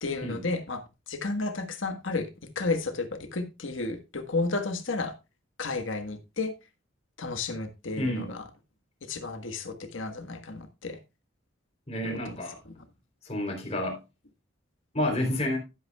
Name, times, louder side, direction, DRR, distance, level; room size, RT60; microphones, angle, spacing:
voice 1, 0.0-2.3 2.5-5.1 5.6-6.5 7.2-8.4 9.1-11.0 12.0-12.3 12.7-12.8, left 3 dB, 75° left, 1.5 m, -32 dB
voice 2, 8.0-8.3 11.9-12.6 13.2-14.0 14.9-15.6, left 1 dB, 35° left, 3.5 m, -29 dB
11.5 x 11.0 x 2.3 m
head